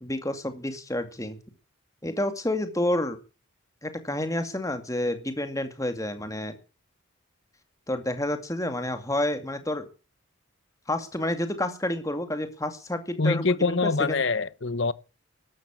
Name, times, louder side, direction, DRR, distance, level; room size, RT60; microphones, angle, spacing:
voice 1, 0.0-1.4 2.0-3.2 3.8-6.6 7.9-9.9 10.9-14.2, left 1 dB, 15° left, 2.3 m, -29 dB
voice 2, 13.2-14.9, left 4 dB, 60° left, 0.9 m, -24 dB
13.5 x 12.0 x 7.1 m
head